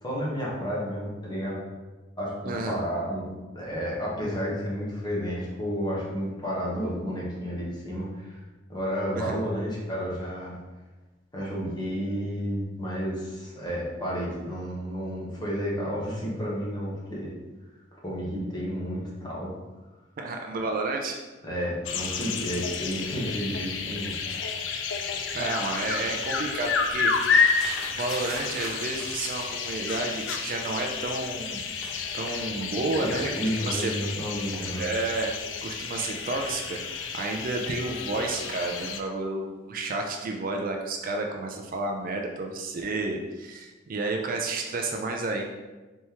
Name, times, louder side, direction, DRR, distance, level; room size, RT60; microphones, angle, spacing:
voice 1, 0.0-1.6 2.2-8.4 8.7-10.6 11.3-17.3 18.0-19.5 21.4-24.1 24.5-24.7 33.0-33.1 33.4-34.9, equal, 25° left, -6 dB, 1.2 m, -31 dB
voice 2, 2.5-2.8 9.2-9.4 20.2-21.2 25.3-27.1 28.0-31.7 32.1-33.3 33.7-33.9 34.8-35.3 35.6-45.4, right 2 dB, 50° right, 2 dB, 0.4 m, -31 dB
sound 1, 21.8-39.0, left 5 dB, 75° left, 0.4 m, -30 dB
sound 2, 26.3-29.9 30.1-32.4, equal, 5° right, 0.9 m, -41 dB
4.3 x 3.5 x 2.9 m, 1.2 s
head